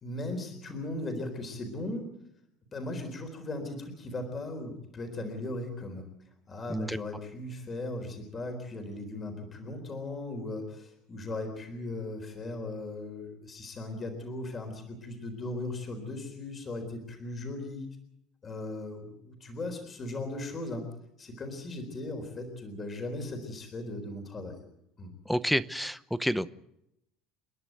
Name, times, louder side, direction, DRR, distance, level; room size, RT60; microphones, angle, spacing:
voice 1, 0.0-2.1 2.7-6.0 6.5-17.9 18.4-20.8 21.2-24.6 25.0-25.1, left 2 dB, 25° left, 4 dB, 4.0 m, -38 dB
voice 2, 25.3-26.5, equal, ahead, 14 dB, 0.8 m, -29 dB
30.0 x 11.0 x 9.3 m, 0.82 s
cardioid pair, 150°, 0 cm